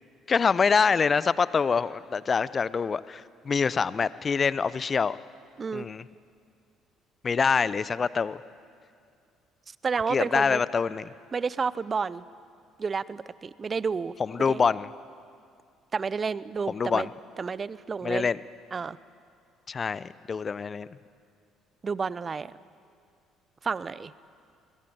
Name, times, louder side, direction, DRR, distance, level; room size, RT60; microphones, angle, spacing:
voice 1, 0.3-5.2 5.7-6.1 7.2-8.4 10.1-11.1 14.2-14.9 16.7-17.1 18.0-18.4 19.7-20.9, left 5 dB, 35° left, 18 dB, 0.8 m, -25 dB
voice 2, 9.8-10.6 11.3-12.2 12.8-14.1 14.5-14.6 15.9-17.1 17.4-18.3 18.7-19.0 21.8-22.5 23.6-24.1, right 5 dB, 35° right, 19 dB, 0.7 m, -30 dB
28.0 x 22.5 x 8.8 m, 2.3 s
figure-of-eight pair, 50°, 0 cm